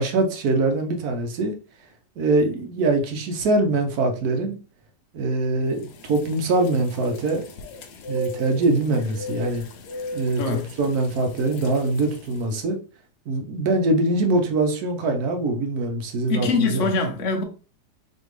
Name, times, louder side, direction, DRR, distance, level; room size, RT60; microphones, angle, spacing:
voice 1, 0.0-1.5 2.2-4.6 5.1-7.4 8.1-9.6 10.1-12.8 13.3-16.9, right 2 dB, 65° right, 1.2 m, -23 dB
sound 1, 5.8-12.4, equal, 70° left, 1.2 m, -38 dB
voice 2, 10.4-10.7 16.3-17.4, left 4 dB, 55° left, 1.0 m, -23 dB
4.3 x 2.9 x 3.1 m
omnidirectional pair, 2.0 m